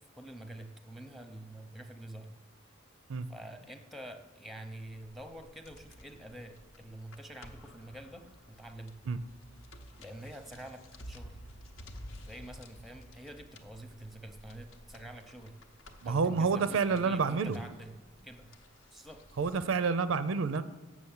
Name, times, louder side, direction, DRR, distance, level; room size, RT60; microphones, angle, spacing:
voice 1, 0.2-2.3 3.3-9.0 10.0-11.4 12.2-15.5 16.0-17.9 18.2-18.5 18.9-19.2, right 1 dB, ahead, 7 dB, 0.7 m, -47 dB
sound 1, 5.3-19.6, equal, 70° left, 0.8 m, -53 dB
voice 2, 16.0-17.6 19.4-20.6, right 5 dB, 75° right, 13 dB, 0.4 m, -28 dB
7.7 x 6.2 x 7.2 m, 1.2 s
head